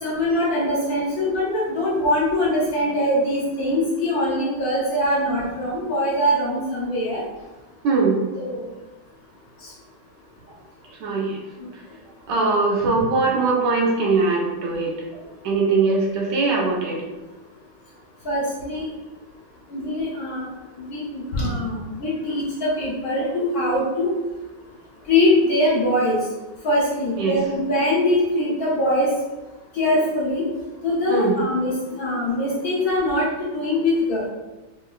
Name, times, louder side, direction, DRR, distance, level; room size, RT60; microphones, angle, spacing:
voice 1, 0.0-7.2 8.4-8.6 12.8-12.9 18.2-18.9 19.7-20.5 20.8-24.1 25.1-26.2 26.6-29.1 29.7-30.4 30.8-33.3 33.5-34.3, left 1 dB, 65° left, -6 dB, 1.0 m, -22 dB
voice 2, 7.8-8.2 10.9-11.4 12.3-14.9 15.4-17.0 27.2-27.3 31.1-31.4, right 3 dB, 70° right, -1 dB, 1.2 m, -21 dB
4.6 x 2.2 x 2.3 m, 1.1 s
omnidirectional pair, 2.2 m